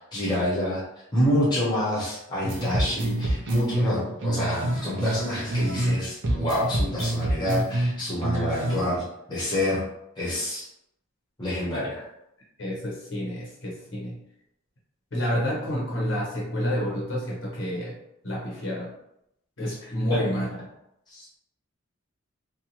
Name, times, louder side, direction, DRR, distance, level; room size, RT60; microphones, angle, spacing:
voice 1, 0.1-0.8 1.1-9.8 10.2-10.6 11.4-12.0 20.1-20.2 21.1-21.4, left 1 dB, 20° left, -7 dB, 0.8 m, -27 dB
sound 1, 2.4-6.0 6.2-9.0, right 1 dB, 55° right, 0.5 m, -27 dB
voice 2, 12.6-14.2 15.1-17.9 18.2-18.9 19.6-20.5, equal, 60° left, -4 dB, 0.8 m, -29 dB
2.6 x 2.3 x 2.9 m, 0.80 s
head